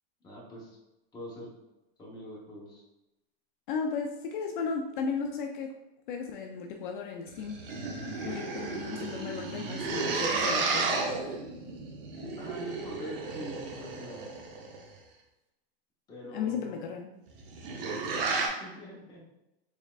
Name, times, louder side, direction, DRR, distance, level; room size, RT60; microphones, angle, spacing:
voice 1, 0.2-0.8 1.1-1.5 2.0-2.8 12.4-14.3 16.1-16.8 18.6-19.2, equal, 15° left, -5 dB, 0.9 m, -43 dB
voice 2, 3.7-5.7 6.1-7.6 8.2-11.0 16.3-17.1, left 5 dB, 55° left, 3 dB, 0.4 m, -35 dB
sound 1, 7.3-14.9 17.3-18.5, right 3 dB, 65° right, 0.9 m, -33 dB
4.2 x 3.5 x 2.4 m, 0.95 s
supercardioid pair, 160°, 30 cm